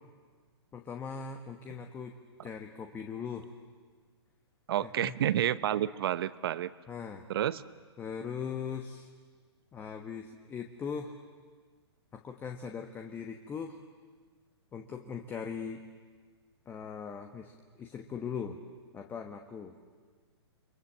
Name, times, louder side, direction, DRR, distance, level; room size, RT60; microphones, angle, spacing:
voice 1, 0.7-2.2 2.4-3.5 4.8-5.1 6.9-7.2 8.0-9.1 9.7-11.2 12.1-13.8 14.7-15.8 16.7-18.6 18.9-19.8, left 6 dB, 15° left, 5 dB, 1.2 m, -40 dB
voice 2, 4.7-6.7 7.3-7.6, right 11 dB, 55° right, 16 dB, 1.0 m, -29 dB
29.5 x 23.5 x 7.4 m, 1.5 s
hypercardioid pair, 140°, 14 cm